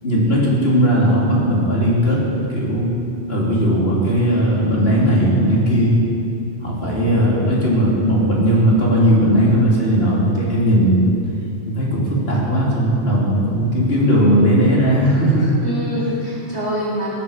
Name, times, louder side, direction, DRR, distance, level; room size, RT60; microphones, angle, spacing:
voice 1, 0.0-2.2 2.5-2.9 3.3-6.0 6.6-11.1 11.6-15.5, equal, 60° left, -5 dB, 3.4 m, -17 dB
voice 2, 6.8-7.3 15.6-17.1, equal, 65° right, -7 dB, 4.5 m, -25 dB
16.5 x 8.6 x 7.3 m, 2.6 s
omnidirectional pair, 1.2 m